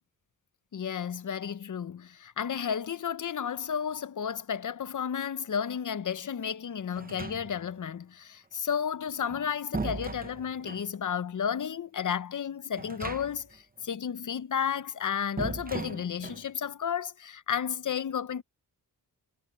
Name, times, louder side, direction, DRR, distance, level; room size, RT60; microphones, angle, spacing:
voice 1, 0.7-18.4, left 8 dB, 50° left, 0.9 m, -32 dB
sound 1, 6.9-7.8 9.1-10.9 12.7-13.6 13.8-13.9 15.4-16.5, right 4 dB, 25° right, 0.9 m, -38 dB
cardioid pair, 70°, 38 cm